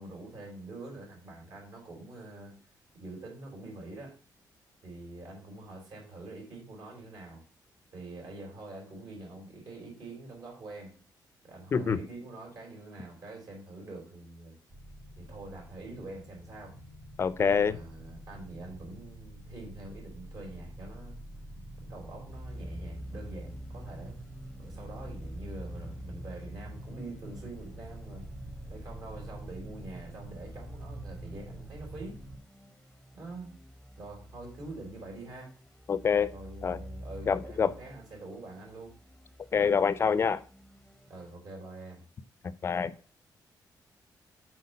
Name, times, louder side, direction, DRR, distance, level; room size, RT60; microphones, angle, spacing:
voice 1, 0.0-2.6 2.9-4.1 4.8-7.4 7.9-11.0 11.4-14.6 15.2-16.7 17.4-21.2 21.8-24.2 24.6-28.3 28.7-32.2 33.1-33.5 34.0-35.5 36.3-38.9 41.1-42.0, right 2 dB, 60° right, 4.0 m, -45 dB
sound 1, 14.7-32.4, right 1 dB, 35° right, 1.6 m, -47 dB
voice 2, 17.2-17.8 35.9-36.3 36.6-36.8 37.3-37.7 39.5-40.4 42.6-42.9, left 6 dB, 35° left, 0.5 m, -26 dB
sound 2, 22.3-41.4, equal, 5° left, 0.8 m, -47 dB
8.3 x 4.5 x 5.1 m
wide cardioid pair, 180°, 8 cm